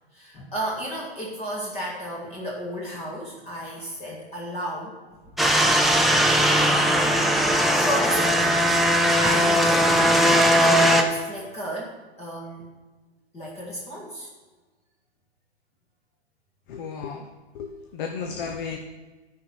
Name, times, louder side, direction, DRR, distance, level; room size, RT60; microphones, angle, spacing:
voice 1, 0.1-4.9 6.0-7.2 7.7-8.6 8.9-10.2 10.6-11.9 12.2-12.6 13.3-14.3, equal, 20° left, -4 dB, 1.9 m, -33 dB
sound 1, 5.4-11.0, equal, ahead, 0.4 m, -19 dB
voice 2, 16.7-17.3 17.5-18.8, left 6 dB, 50° left, 4 dB, 0.9 m, -33 dB
10.0 x 4.7 x 6.9 m, 1.3 s
hypercardioid pair, 120°, 31 cm